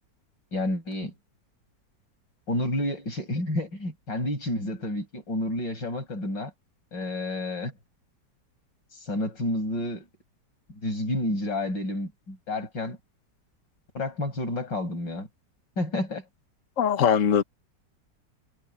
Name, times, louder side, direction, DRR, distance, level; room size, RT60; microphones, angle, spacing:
voice 1, 0.5-1.1 2.5-6.5 6.9-7.7 8.9-10.1 10.7-13.0 13.9-15.3 15.8-16.2, left 1 dB, 80° left, 7.8 m, -30 dB
voice 2, 16.8-17.4, left 8 dB, 45° left, 1.5 m, -21 dB
omnidirectional pair, 2.0 m